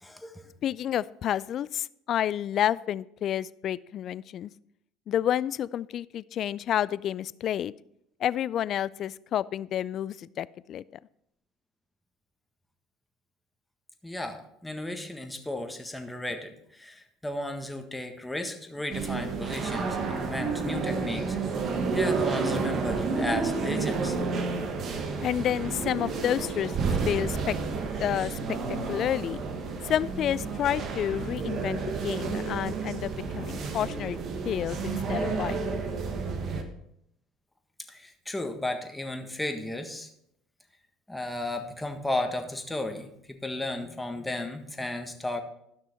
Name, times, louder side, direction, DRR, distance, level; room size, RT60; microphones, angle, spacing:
voice 1, 0.0-0.4 14.0-24.2 37.9-40.1 41.1-45.4, left 1 dB, 10° left, 5 dB, 1.5 m, -34 dB
voice 2, 0.6-4.5 5.1-7.7 8.2-10.8 25.2-26.7 27.1-27.6 28.0-28.6 28.9-29.4 29.8-34.2 34.4-35.8, left 10 dB, 50° left, 20 dB, 0.3 m, -30 dB
sound 1, 18.9-36.6, right 4 dB, 50° right, 1.3 m, -30 dB
12.5 x 6.2 x 4.4 m, 0.76 s
hypercardioid pair, 70°, 0 cm